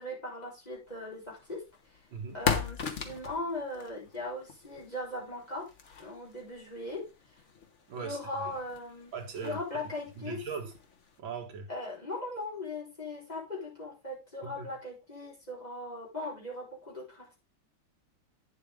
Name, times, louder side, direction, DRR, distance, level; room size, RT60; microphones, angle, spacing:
voice 1, 0.0-1.6 2.3-5.7 6.0-7.0 8.0-9.1 9.4-10.4 11.7-17.4, left 2 dB, 20° left, 4.3 m, -39 dB
sound 1, 0.9-11.2, left 6 dB, 45° left, 1.2 m, -40 dB
voice 2, 7.9-8.5 9.1-9.6 10.2-10.7 11.2-11.7 14.4-14.7, right 5 dB, 70° right, 2.4 m, -39 dB
9.1 x 7.5 x 3.5 m
omnidirectional pair, 2.3 m